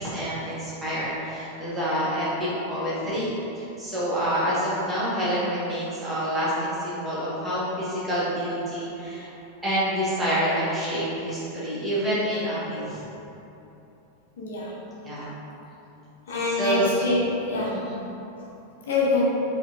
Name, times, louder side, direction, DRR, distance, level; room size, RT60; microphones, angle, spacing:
voice 1, 0.0-3.3 3.6-9.3 9.6-13.0 15.0-15.3 16.4-16.9 17.7-18.0, equal, 15° right, -10 dB, 1.2 m, -27 dB
voice 2, 14.4-14.7 16.3-17.8 18.9-19.2, left 3 dB, 60° left, -5 dB, 0.6 m, -25 dB
4.3 x 2.8 x 2.4 m, 2.9 s
figure-of-eight pair, 90°, 0 cm